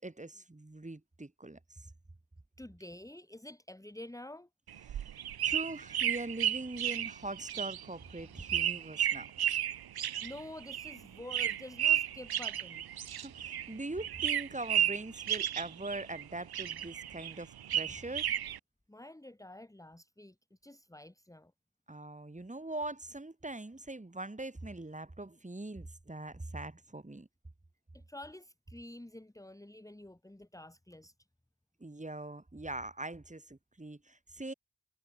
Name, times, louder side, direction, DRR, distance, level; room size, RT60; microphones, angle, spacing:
voice 1, 0.0-1.9 4.9-9.3 13.2-18.3 21.9-27.3 31.8-34.5, right 2 dB, 20° right, 7.4 m, -42 dB
voice 2, 2.6-4.5 10.2-12.9 18.9-20.3 20.6-21.5 27.9-31.1, left 1 dB, 10° left, 2.5 m, -48 dB
sound 1, 4.7-13.7 14.0-16.2 16.5-18.6, right 10 dB, 75° right, 0.7 m, -33 dB
wide cardioid pair, 140°, 38 cm